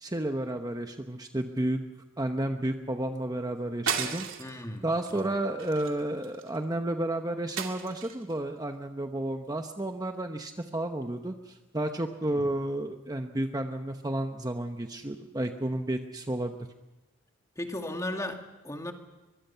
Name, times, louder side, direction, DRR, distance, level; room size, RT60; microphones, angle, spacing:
voice 1, 0.0-1.8 2.2-16.5, right 1 dB, 20° right, 5 dB, 1.0 m, -32 dB
sound 1, 3.9-4.6 5.1-5.3 5.6-6.6 7.6-8.3, right 7 dB, 85° right, 2.4 m, -34 dB
voice 2, 4.4-5.4 12.3-12.5 17.6-18.9, left 1 dB, 15° left, 4 dB, 2.1 m, -36 dB
24.0 x 22.0 x 5.7 m, 1.1 s
head